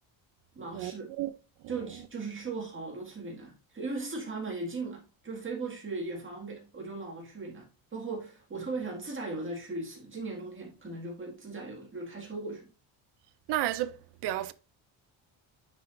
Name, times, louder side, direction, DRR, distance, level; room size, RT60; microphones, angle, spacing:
voice 1, 0.6-1.1 1.7-12.7, right 3 dB, 25° right, 2.0 m, -38 dB
voice 2, 13.5-14.5, right 13 dB, 60° right, 0.6 m, -32 dB
9.7 x 4.5 x 2.5 m
cardioid pair, 165°, 48 cm